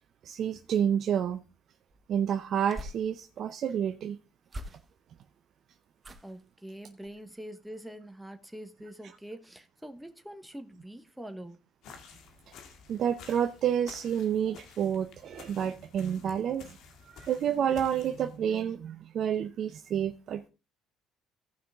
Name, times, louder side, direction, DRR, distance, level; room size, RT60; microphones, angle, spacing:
voice 1, 0.2-1.4 2.1-4.2 12.9-16.8 17.1-20.5, right 9 dB, 60° right, 0.7 m, -29 dB
sound 1, 1.9-3.5 4.4-5.2 6.0-6.5 7.0-7.3 7.6-7.7, equal, 25° right, 1.1 m, -45 dB
voice 2, 6.2-11.6, right 1 dB, 5° right, 1.3 m, -44 dB
sound 2, 11.8-18.4, left 6 dB, 70° left, 1.8 m, -52 dB
15.0 x 5.6 x 3.6 m
supercardioid pair, 80°, 0 cm